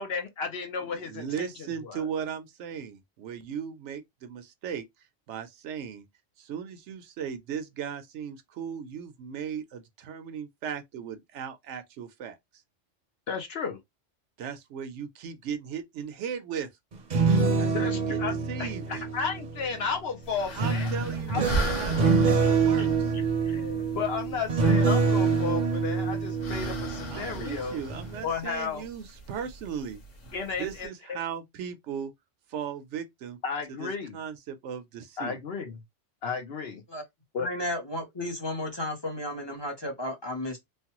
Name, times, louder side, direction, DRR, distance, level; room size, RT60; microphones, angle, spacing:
voice 1, 0.0-2.1 13.3-13.8 17.7-18.3 18.6-20.9 21.3-21.4 21.9-22.1 22.4-22.9 23.5-27.8 28.2-28.9 30.3-31.2 33.4-34.2 35.2-35.8 36.2-36.8 37.3-37.5, left 5 dB, 60° left, 0.9 m, -33 dB
voice 2, 1.1-4.8 5.3-6.0 6.4-12.4 14.4-16.7 17.6-19.0 20.5-23.3 27.1-30.0 30.6-32.1 32.5-33.4 33.8-35.4, right 7 dB, 75° right, 0.9 m, -37 dB
sound 1, 16.9-19.8 20.6-27.5 27.9-28.2, right 4 dB, 45° right, 0.7 m, -26 dB
sound 2, 20.2-30.9, right 1 dB, 85° left, 1.4 m, -38 dB
voice 3, 37.4-40.6, left 1 dB, 25° left, 0.7 m, -33 dB
3.2 x 2.2 x 2.9 m
omnidirectional pair, 1.3 m